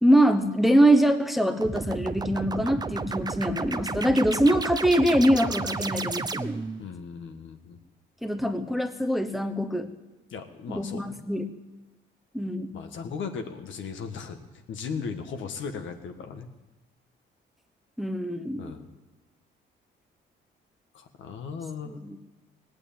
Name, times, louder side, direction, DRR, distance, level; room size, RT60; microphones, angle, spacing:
voice 1, 0.0-6.6 8.2-9.9 10.7-11.4 12.3-12.8 18.0-18.7 21.9-22.3, equal, ahead, 9 dB, 1.0 m, -23 dB
sound 1, 1.6-6.8, right 4 dB, 20° right, 0.6 m, -32 dB
voice 2, 6.8-7.8 10.3-11.2 12.7-14.4 14.7-16.5 18.6-18.8 20.9-22.0, left 5 dB, 75° left, 6 dB, 1.5 m, -37 dB
18.0 x 8.7 x 8.7 m, 1.1 s
cardioid pair, 90°, 20 cm